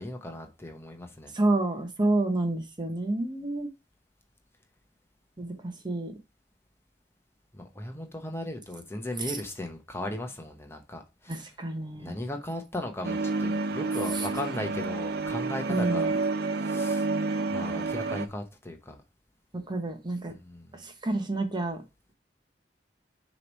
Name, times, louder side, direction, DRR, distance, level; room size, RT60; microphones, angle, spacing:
voice 1, 0.0-1.3 7.5-11.5 12.0-16.1 16.6-17.1 17.5-19.0 20.3-20.7, left 1 dB, 15° left, 0.9 m, -37 dB
voice 2, 1.3-3.7 5.4-5.5 5.8-6.1 11.3-12.2 15.7-16.1 19.5-20.3 20.8-21.8, right 2 dB, 25° right, 0.9 m, -29 dB
sound 1, 13.0-18.3, right 3 dB, 65° right, 0.5 m, -29 dB
6.6 x 3.1 x 5.3 m
head